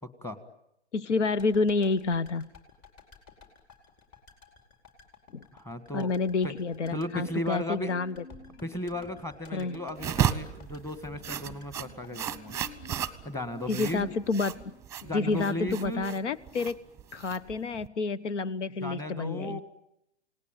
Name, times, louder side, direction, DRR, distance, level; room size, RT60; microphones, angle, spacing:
voice 1, 0.0-0.4 5.5-6.1 6.4-6.5 6.9-8.0 8.6-12.6 13.3-14.1 15.0-16.1 18.8-19.6, left 1 dB, 10° left, 11 dB, 1.8 m, -35 dB
voice 2, 0.9-2.5 5.3-5.4 5.9-8.2 9.5-9.8 13.7-14.6 15.0-16.8 17.1-19.6, left 3 dB, 85° left, 17 dB, 1.2 m, -29 dB
sound 1, 1.4-13.6 13.8-13.9, left 5 dB, 35° left, 4.6 m, -55 dB
Marimba xylophone, 6.8-7.6 7.8-9.3 9.6-10.3 10.7-14.9 15.2-16.0 16.4-16.6, equal, 60° left, 7.2 m, -51 dB
sound 2, 10.0-17.9, right 9 dB, 10° right, 1.0 m, -34 dB
28.5 x 19.0 x 9.2 m, 0.82 s
hypercardioid pair, 145°, 35 cm